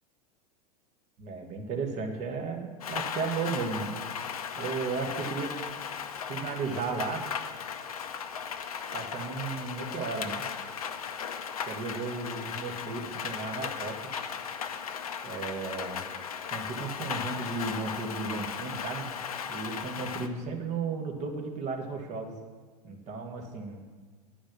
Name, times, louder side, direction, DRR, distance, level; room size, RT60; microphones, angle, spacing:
voice 1, 1.2-4.0 4.5-5.5 6.3-7.2 8.9-10.5 11.7-14.0 15.2-16.0 16.5-19.1 19.5-22.3 22.8-23.9, right 4 dB, 35° right, 2 dB, 1.6 m, -34 dB
Rain, 2.8-20.3, left 7 dB, 65° left, 0.7 m, -37 dB
10.5 x 5.1 x 7.4 m, 1.5 s
figure-of-eight pair, 85°, 20 cm